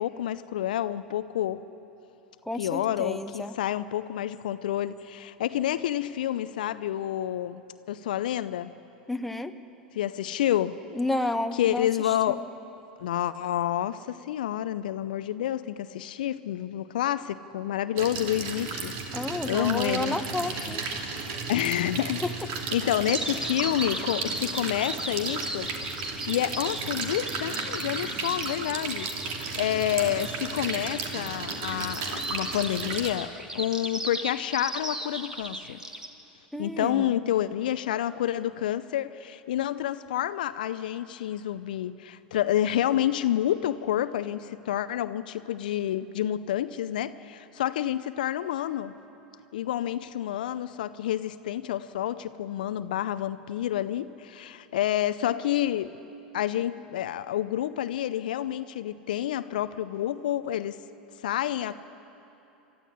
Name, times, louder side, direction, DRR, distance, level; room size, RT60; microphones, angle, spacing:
voice 1, 0.0-1.6 2.6-8.7 9.9-10.8 11.6-12.5 13.0-18.9 19.5-20.2 20.5-20.7 21.5-22.2 22.7-35.8 36.6-48.9 49.5-55.9 56.3-60.8 61.2-61.7, left 12 dB, 65° left, 13 dB, 0.6 m, -29 dB
voice 2, 2.4-3.5 9.1-9.5 10.9-12.5 19.1-20.8 36.5-37.1, left 1 dB, 5° left, 7 dB, 1.1 m, -31 dB
sound 1, 18.0-33.1, right 4 dB, 50° right, 2.7 m, -34 dB
Bird vocalization bird call bird song, 23.1-36.1, right 1 dB, 10° right, 1.9 m, -36 dB
26.5 x 13.0 x 9.8 m, 3.0 s
figure-of-eight pair, 85°, 5 cm